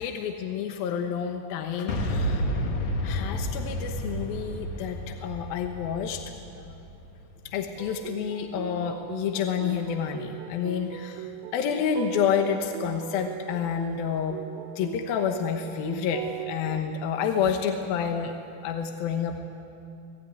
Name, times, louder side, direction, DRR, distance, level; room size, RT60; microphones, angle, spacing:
voice 1, 0.0-2.4 3.0-6.2 7.5-14.4 14.8-18.3 18.6-19.4, left 7 dB, 80° left, 5 dB, 3.0 m, -29 dB
Boom, 1.9-7.8, equal, 50° left, 3.0 m, -31 dB
sound 1, 7.8-16.8, right 11 dB, 85° right, 2.7 m, -39 dB
28.0 x 18.5 x 9.5 m, 2.8 s
omnidirectional pair, 4.2 m